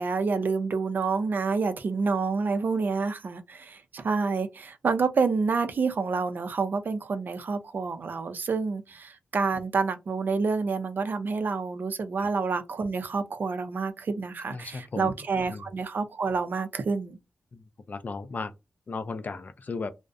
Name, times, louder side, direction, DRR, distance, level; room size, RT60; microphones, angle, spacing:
voice 1, 0.0-17.2, right 4 dB, 65° right, 0.4 m, -28 dB
voice 2, 14.5-15.2 15.5-15.7 17.5-18.5 18.9-19.9, left 4 dB, 50° left, 0.4 m, -36 dB
2.4 x 2.0 x 2.5 m
cardioid pair, 50°, 4 cm